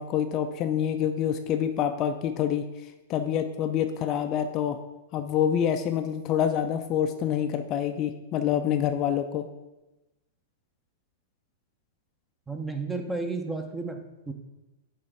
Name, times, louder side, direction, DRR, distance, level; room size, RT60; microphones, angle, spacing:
voice 1, 0.0-2.6 3.1-4.8 5.1-9.5, left 9 dB, 35° left, 6 dB, 0.5 m, -26 dB
voice 2, 12.5-14.3, right 3 dB, 10° right, 5 dB, 0.8 m, -32 dB
9.6 x 3.3 x 4.8 m, 1.0 s
hypercardioid pair, 105°, 0 cm